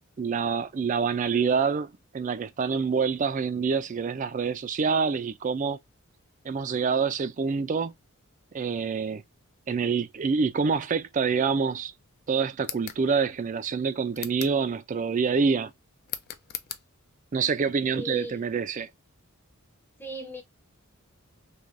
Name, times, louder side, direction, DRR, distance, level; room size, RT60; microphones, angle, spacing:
voice 1, 0.2-5.8 6.4-7.9 8.5-9.2 9.7-11.9 12.3-15.7 17.3-18.9, right 5 dB, 35° right, 0.3 m, -26 dB
sound 1, 12.6-13.0 14.1-14.6 16.1-16.8, left 11 dB, 45° left, 0.3 m, -38 dB
voice 2, 17.9-18.4 20.0-20.4, equal, 10° left, 0.7 m, -37 dB
3.2 x 2.7 x 2.5 m
head